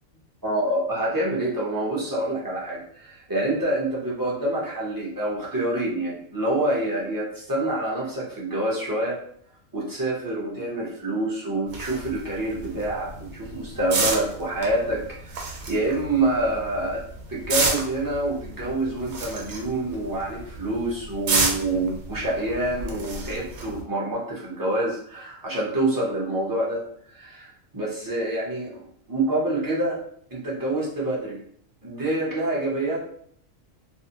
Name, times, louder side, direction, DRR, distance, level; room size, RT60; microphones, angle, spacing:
voice 1, 0.4-9.2 9.7-17.0 17.3-28.8 29.1-30.0 30.3-31.4 31.8-33.0, right 1 dB, 25° right, -6 dB, 0.5 m, -27 dB
sound 1, 11.7-23.8, right 3 dB, 85° right, 1.0 m, -31 dB
2.5 x 2.0 x 2.7 m, 0.64 s
omnidirectional pair, 1.3 m